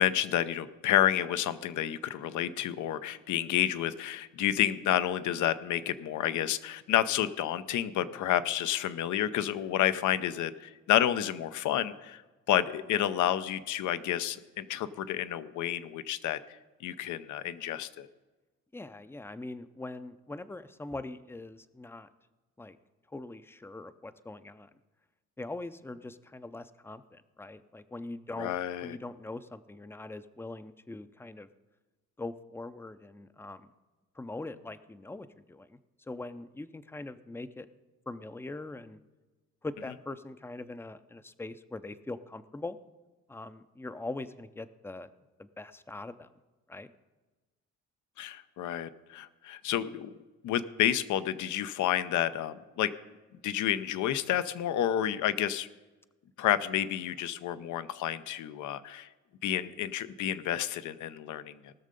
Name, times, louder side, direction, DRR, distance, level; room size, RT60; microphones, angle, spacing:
voice 1, 0.0-12.2 12.5-16.4 16.8-18.1 28.4-29.0 48.2-50.2 50.4-52.9 53.4-55.7 56.4-59.1 59.4-61.7, left 11 dB, 75° left, 14 dB, 0.7 m, -30 dB
voice 2, 18.7-22.1 22.6-22.8 23.1-24.7 25.4-28.5 28.8-31.5 32.2-33.7 34.2-35.8 36.1-37.7 38.1-39.0 39.6-42.8 43.3-45.1 45.4-46.3 46.7-46.9, left 2 dB, 10° left, 13 dB, 0.5 m, -42 dB
18.5 x 6.5 x 5.2 m, 1.2 s
cardioid pair, 90°, 30 cm